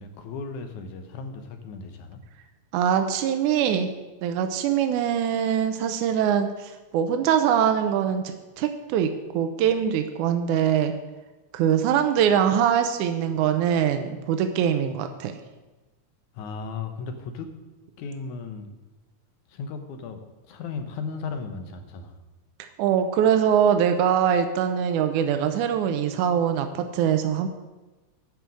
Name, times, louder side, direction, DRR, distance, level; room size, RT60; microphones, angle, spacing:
voice 1, 0.0-2.2 16.3-17.5 18.0-18.7 19.5-22.2, left 4 dB, 80° left, 7 dB, 2.5 m, -36 dB
voice 2, 2.7-3.9 4.2-11.0 11.5-15.4 22.6-27.5, right 8 dB, 80° right, 7 dB, 2.2 m, -23 dB
11.5 x 6.1 x 7.6 m, 1.2 s
omnidirectional pair, 3.5 m